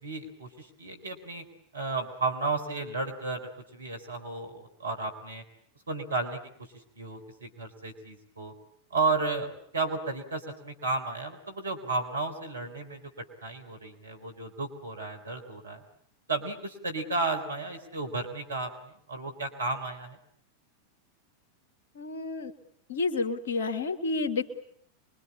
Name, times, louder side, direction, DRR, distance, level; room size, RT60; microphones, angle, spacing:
voice 1, 0.0-1.4 1.7-5.4 5.9-8.5 8.9-13.0 13.4-15.8 16.3-20.2, right 3 dB, 75° right, 6 dB, 3.9 m, -33 dB
voice 2, 22.0-22.5 22.9-24.4, left 3 dB, 60° left, 7 dB, 2.1 m, -30 dB
25.5 x 23.5 x 8.7 m, 0.68 s
figure-of-eight pair, 90°, 0 cm